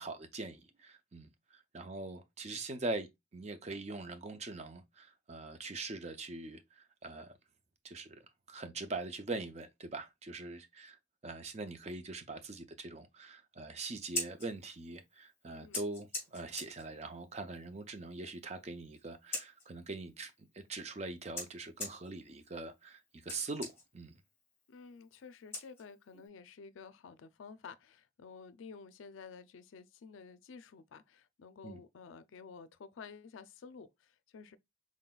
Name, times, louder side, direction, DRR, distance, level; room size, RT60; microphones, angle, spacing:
voice 1, 0.0-7.3 7.8-8.2 8.5-11.0 11.2-24.1 31.6-31.8, right 3 dB, 35° right, 0.5 m, -43 dB
Scissors, 13.9-26.3, left 2 dB, 10° left, 1.5 m, -46 dB
voice 2, 15.5-15.8 24.7-34.6, left 5 dB, 80° left, 0.4 m, -52 dB
3.9 x 3.7 x 2.2 m
head